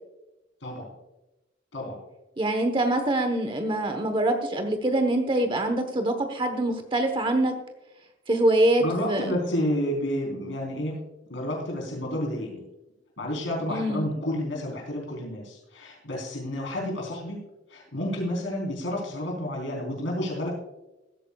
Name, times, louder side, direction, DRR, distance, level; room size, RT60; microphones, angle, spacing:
voice 1, 2.4-7.5 8.3-9.3 13.7-14.1, right 1 dB, 25° right, 6 dB, 1.0 m, -24 dB
voice 2, 8.8-11.0 11.3-12.6 13.2-17.4 17.7-20.5, left 1 dB, 80° left, -1 dB, 3.9 m, -30 dB
16.5 x 13.5 x 2.3 m, 0.99 s
head